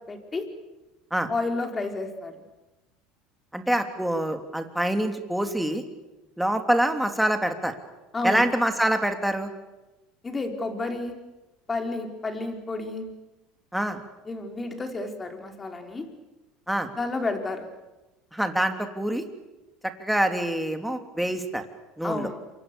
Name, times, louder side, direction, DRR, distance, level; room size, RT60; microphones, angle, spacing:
voice 1, 0.1-0.5 1.3-2.4 8.1-8.4 10.2-11.2 11.7-13.1 14.3-16.1 17.0-17.7 22.0-22.4, left 3 dB, 25° left, 5 dB, 4.7 m, -31 dB
voice 2, 3.5-5.8 6.4-7.7 8.2-9.5 13.7-14.0 16.7-16.9 18.3-19.2 20.0-21.6 22.0-22.3, right 1 dB, 5° right, 6 dB, 3.1 m, -25 dB
27.5 x 24.5 x 7.1 m, 1.1 s
supercardioid pair, 90°, 0 cm